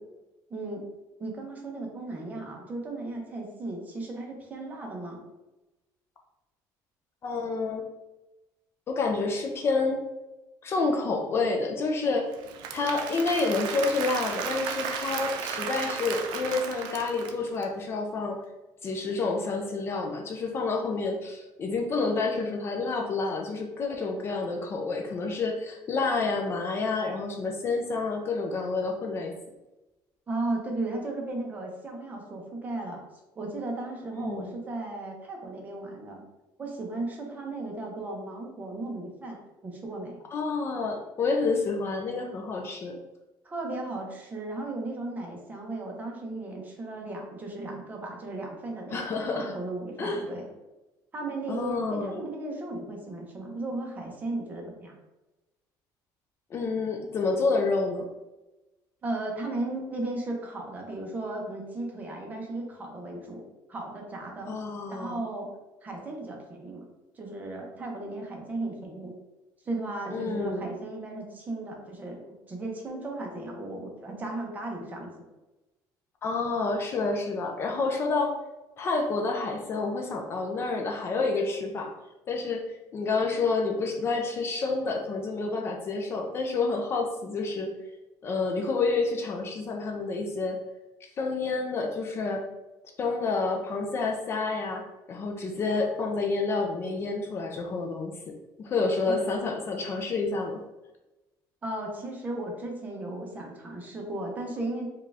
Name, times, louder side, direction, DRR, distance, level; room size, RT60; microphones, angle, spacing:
voice 1, 0.5-0.8 1.2-5.2 30.3-33.0 33.4-36.2 36.6-40.2 43.4-50.5 51.1-54.9 59.0-63.4 63.7-64.5 64.9-65.5 65.8-66.9 67.2-69.1 69.6-75.3 99.1-99.2 101.6-104.9, right 2 dB, 20° right, 1 dB, 0.8 m, -35 dB
voice 2, 7.2-7.8 8.9-10.0 10.6-12.3 12.7-18.4 18.8-29.3 34.2-34.5 40.3-43.0 48.9-49.5 50.0-50.2 51.5-52.2 56.5-58.1 64.4-65.2 70.1-70.7 76.2-78.3 78.8-81.9 82.3-87.7 88.2-90.6 91.2-92.4 93.0-100.6, left 3 dB, 35° left, 2 dB, 0.4 m, -29 dB
Applause / Crowd, 12.3-17.6, right 6 dB, 75° right, 0.5 m, -34 dB
4.6 x 2.4 x 3.4 m, 1.0 s
cardioid pair, 155°, 8 cm